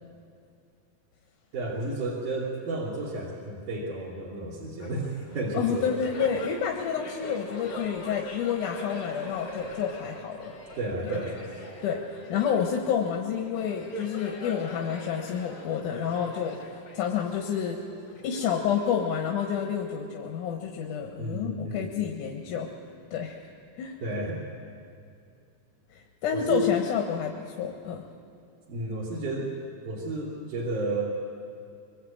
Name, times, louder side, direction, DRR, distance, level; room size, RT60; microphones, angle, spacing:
voice 1, 1.5-5.1 5.3-6.0 10.8-11.4 21.2-22.0 24.0-24.4 26.3-26.8 28.7-29.5 29.8-31.2, right 1 dB, 80° right, -5 dB, 4.4 m, -31 dB
Laughter, 4.8-19.8, equal, 65° left, 5.2 m, -42 dB
voice 2, 5.5-10.5 11.0-11.1 11.8-12.0 12.3-17.8 18.2-22.7 23.1-23.5 23.8-24.0 25.9-28.0, left 8 dB, 80° left, 2 dB, 3.0 m, -29 dB
24.0 x 23.5 x 8.7 m, 2.4 s
omnidirectional pair, 3.6 m